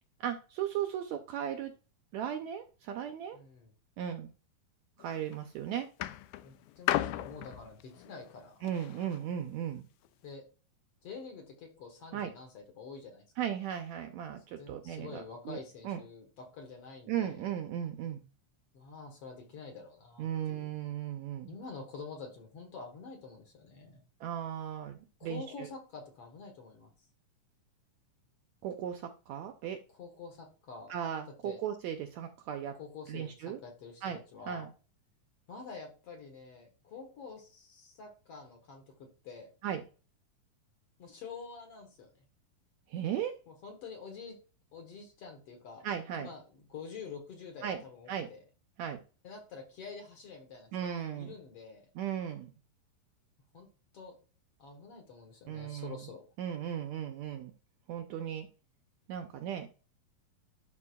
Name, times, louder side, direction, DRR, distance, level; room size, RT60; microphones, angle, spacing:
voice 1, 0.2-1.7 2.1-3.4 4.0-4.3 5.0-5.9 8.6-9.9 12.1-12.3 13.4-15.6 15.8-16.0 17.1-18.2 20.2-21.6 24.2-25.7 28.6-29.8 30.9-32.8 33.1-33.6 34.0-34.2 34.5-34.7 39.6-39.8 42.9-43.3 45.8-46.3 47.6-47.8 48.1-48.3 48.8-49.0 50.7-51.3 51.9-52.5 55.5-56.1 56.4-57.5 57.9-58.5 59.1-59.7, right 9 dB, 75° right, 6 dB, 1.7 m, -36 dB
voice 2, 3.3-3.7 6.4-8.6 10.2-10.4 11.0-13.3 14.6-17.3 18.7-20.7 21.5-24.0 25.2-26.9 29.9-30.9 31.4-31.6 32.8-34.7 35.5-39.5 41.0-42.1 43.5-44.4 44.7-45.9 46.1-46.4 46.7-48.4 49.2-50.7 51.2-51.9 53.5-53.7 53.9-54.2 54.6-56.2, left 5 dB, 55° left, 3 dB, 2.0 m, -47 dB
sound 1, 5.0-5.4 6.0-9.2 10.1-10.2, left 14 dB, 85° left, 2.1 m, -35 dB
11.0 x 5.0 x 2.3 m, 0.35 s
omnidirectional pair, 3.8 m